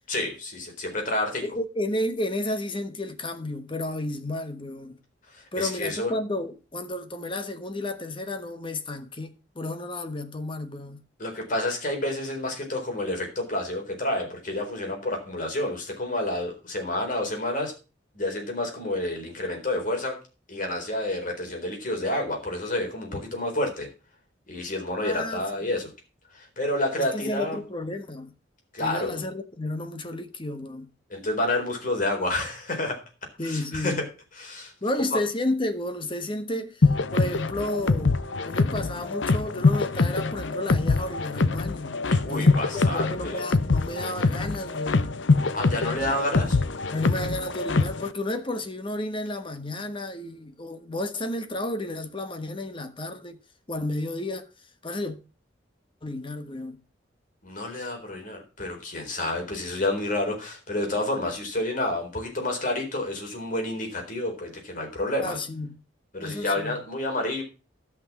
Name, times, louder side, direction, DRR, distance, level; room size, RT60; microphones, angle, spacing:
voice 1, 0.1-1.4 5.3-6.1 11.2-17.7 18.1-20.2 20.5-23.9 24.5-25.9 26.3-27.6 28.7-29.2 31.1-33.0 33.4-34.0 34.4-34.7 35.1-35.2 42.1-43.5 45.5-46.6 57.4-65.4 66.1-67.4, left 1 dB, 45° left, 4.2 m, -29 dB
voice 2, 1.4-5.0 5.5-11.0 25.0-25.8 27.0-28.3 28.8-30.9 33.4-34.1 34.8-38.2 38.4-42.0 42.3-45.2 46.9-53.4 53.7-54.5 54.8-55.2 56.0-56.8 65.2-65.7 66.2-66.8, left 1 dB, 25° left, 1.2 m, -32 dB
sound 1, 36.8-48.1, left 3 dB, 70° left, 0.7 m, -24 dB
13.5 x 6.0 x 6.0 m
head